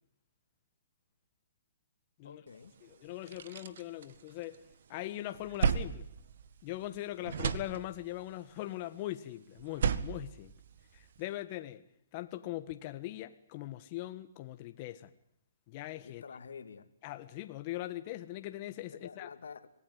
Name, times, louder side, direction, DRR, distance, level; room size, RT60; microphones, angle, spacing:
voice 1, 2.2-2.7 16.2-16.9 18.9-19.7, left 6 dB, 80° left, 2.4 m, -48 dB
sound 1, 2.6-2.7 3.1-4.7 5.1-7.0 7.2-8.3 9.6-11.2, right 7 dB, 60° right, 1.8 m, -35 dB
voice 2, 2.8-4.6 4.9-6.1 6.6-10.5 10.9-11.8 12.1-15.1 15.7-16.2 17.0-19.3, left 15 dB, 35° left, 1.5 m, -41 dB
26.5 x 19.5 x 9.5 m
hypercardioid pair, 155°, 0 cm